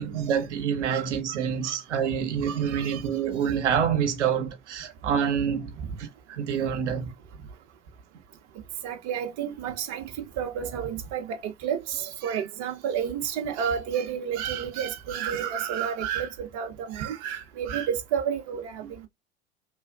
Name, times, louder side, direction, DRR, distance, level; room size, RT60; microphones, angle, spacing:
voice 1, 0.0-5.7 6.0-7.1 18.8-18.9, right 8 dB, 80° right, 0.9 m, -27 dB
voice 2, 0.9-1.4 1.6-1.8 2.4-3.0 4.8-4.9 8.8-10.1 10.4-19.1, right 8 dB, 50° right, 0.7 m, -31 dB
3.2 x 2.4 x 2.3 m
hypercardioid pair, 85°, 35 cm